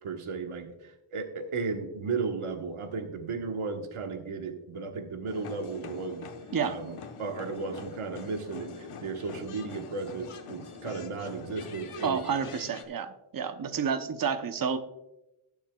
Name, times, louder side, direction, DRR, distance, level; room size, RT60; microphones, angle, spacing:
voice 1, 0.0-6.2 6.6-12.2, right 4 dB, 75° right, 5 dB, 1.4 m, -35 dB
sound 1, 5.3-12.8, left 5 dB, 85° left, 1.1 m, -44 dB
voice 2, 12.0-14.8, right 6 dB, 40° right, 9 dB, 0.8 m, -30 dB
18.0 x 7.2 x 2.3 m, 0.92 s
wide cardioid pair, 105°, 50 cm